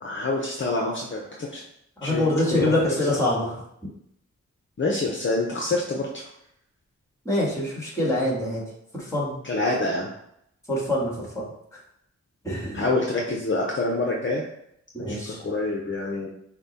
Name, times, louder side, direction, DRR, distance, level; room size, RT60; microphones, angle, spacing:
voice 1, 0.0-1.6 2.0-2.2 2.5-2.7 4.8-6.2 9.5-10.1 12.7-14.4 15.1-16.3, left 2 dB, 40° left, -1 dB, 0.7 m, -26 dB
voice 2, 2.0-3.5 7.3-8.6 8.9-9.3 10.7-11.5 12.4-12.9 14.9-15.4, left 1 dB, 10° left, -4 dB, 1.8 m, -25 dB
5.8 x 2.2 x 4.0 m, 0.74 s
wide cardioid pair, 85°, 29 cm